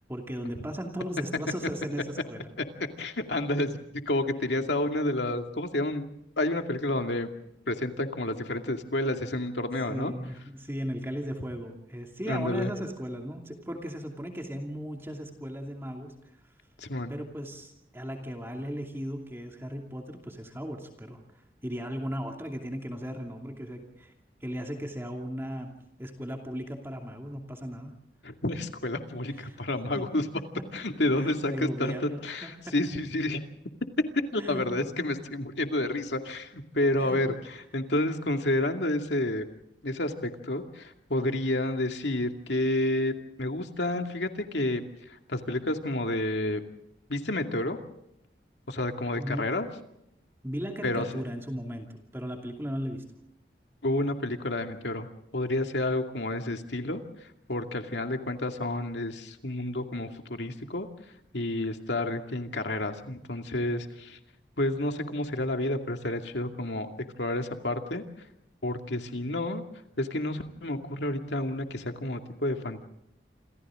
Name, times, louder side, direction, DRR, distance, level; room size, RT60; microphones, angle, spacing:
voice 1, 0.1-2.4 9.9-16.1 17.1-21.2 21.6-24.1 24.4-25.7 26.0-27.9 29.3-29.6 31.2-32.7 34.4-34.7 37.0-37.2 49.2-49.4 50.4-51.9 52.1-53.0, equal, 15° right, 2 dB, 2.6 m, -36 dB
voice 2, 3.0-3.7 4.1-6.0 6.4-7.3 7.7-10.1 12.2-12.7 16.8-17.1 28.2-30.2 30.7-31.9 32.2-33.4 34.3-39.5 39.8-44.8 45.3-46.6 47.1-47.8 48.7-49.7 50.8-51.2 53.8-55.1 55.3-57.0 57.5-60.9 61.3-64.2 64.6-66.9 67.2-68.0 68.6-69.6 70.0-72.8, left 1 dB, 90° left, 5 dB, 2.4 m, -30 dB
28.0 x 27.5 x 3.8 m, 0.80 s
head